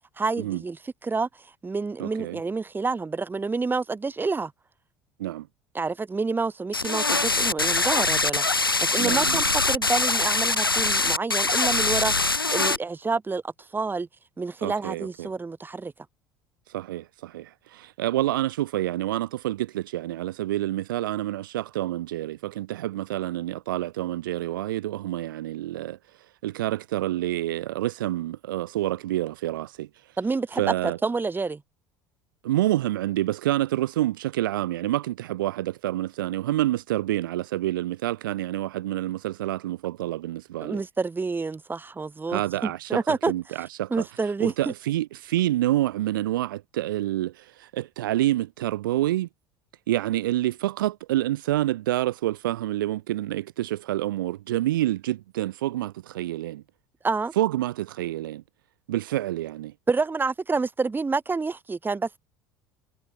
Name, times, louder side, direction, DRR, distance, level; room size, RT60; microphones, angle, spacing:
voice 1, 0.2-0.8 1.0-1.3 1.6-4.5 5.7-14.1 14.4-15.9 30.2-30.6 31.0-31.6 40.6-43.3 43.9-44.5 57.0-57.3 59.9-62.2, right 4 dB, 15° right, 2.1 m, -28 dB
voice 2, 2.0-2.4 5.2-5.5 9.0-9.4 14.6-15.3 16.7-26.0 26.4-29.9 30.6-31.0 32.4-40.8 42.3-44.1 44.4-49.3 49.9-56.6 57.4-58.4 58.9-59.7, right 14 dB, 70° right, 0.8 m, -28 dB
sound 1, 6.7-12.8, left 3 dB, 90° left, 0.8 m, -23 dB
figure-of-eight pair, 65°, 12 cm